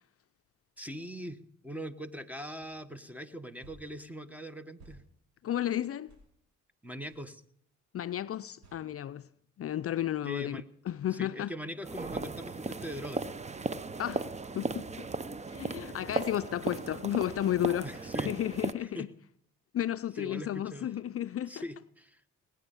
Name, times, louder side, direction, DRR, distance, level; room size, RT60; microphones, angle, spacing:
voice 1, 0.8-5.0 6.8-7.4 10.2-10.7 11.1-13.2 17.8-18.3 18.8-19.1 20.1-20.9 21.5-22.2, equal, 5° right, 1.3 m, -41 dB
sound 1, 2.6-2.8 3.6-3.9 4.8-5.0 6.1-6.3 7.0-7.2 8.6-8.8, right 1 dB, 65° right, 5.1 m, -55 dB
voice 2, 5.4-6.1 7.9-9.3 9.6-11.5 14.0-14.3 14.5-15.0 15.5-17.9 18.2-19.1 19.7-21.6, left 11 dB, 50° left, 0.5 m, -33 dB
sound 2, 11.8-18.7, right 3 dB, 25° right, 0.8 m, -36 dB
19.5 x 9.1 x 7.1 m
cardioid pair, 90°, 30 cm